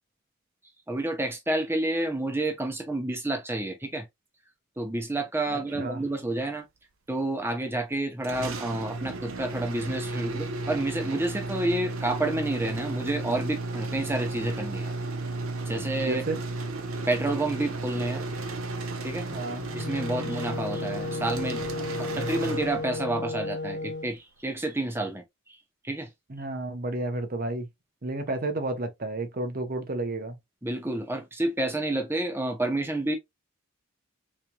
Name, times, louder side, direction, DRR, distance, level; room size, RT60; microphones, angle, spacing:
voice 1, 0.9-4.0 4.8-6.6 7.1-14.9 15.7-16.2 17.1-18.2 19.0-19.3 19.7-25.2 25.8-26.1 30.6-33.2, right 2 dB, 10° right, 0.8 m, -29 dB
voice 2, 5.5-6.0 16.0-16.4 19.3-19.6 26.3-27.7 28.0-30.4, right 2 dB, 45° right, 0.8 m, -31 dB
sound 1, 8.2-23.2, right 2 dB, 75° right, 0.7 m, -34 dB
Wind instrument woodwind instrument, 19.6-24.1, left 3 dB, 50° left, 0.5 m, -34 dB
4.1 x 3.0 x 2.3 m
head